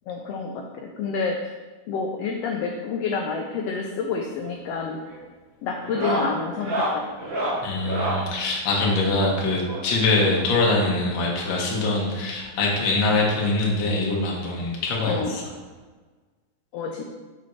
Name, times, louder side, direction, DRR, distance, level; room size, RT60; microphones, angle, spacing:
voice 1, 0.1-1.5 1.9-5.0 5.6-7.3 15.0-15.3 16.7-17.0, left 5 dB, 85° left, 2 dB, 1.4 m, -29 dB
sound 1, 4.2-4.6 4.9-5.2 5.8-8.3 9.6-11.0 12.0-12.1 12.3-12.5 12.9-13.0 14.3-14.4 15.7-15.8, right 1 dB, 55° right, 2.7 m, -29 dB
voice 2, 7.6-15.4, left 2 dB, 50° left, -2 dB, 1.5 m, -23 dB
6.9 x 6.1 x 3.1 m, 1.3 s
omnidirectional pair, 3.4 m